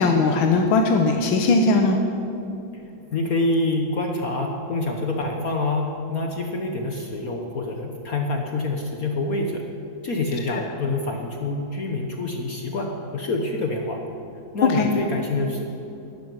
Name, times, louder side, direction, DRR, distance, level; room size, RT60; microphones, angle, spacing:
voice 1, 0.0-2.0 10.5-10.6 14.7-14.9, left 3 dB, 85° left, 4 dB, 1.8 m, -19 dB
voice 2, 3.1-9.6 10.0-14.0 14.5-15.6, left 2 dB, 50° left, 2 dB, 1.5 m, -26 dB
12.0 x 11.5 x 9.7 m, 2.7 s
omnidirectional pair, 2.1 m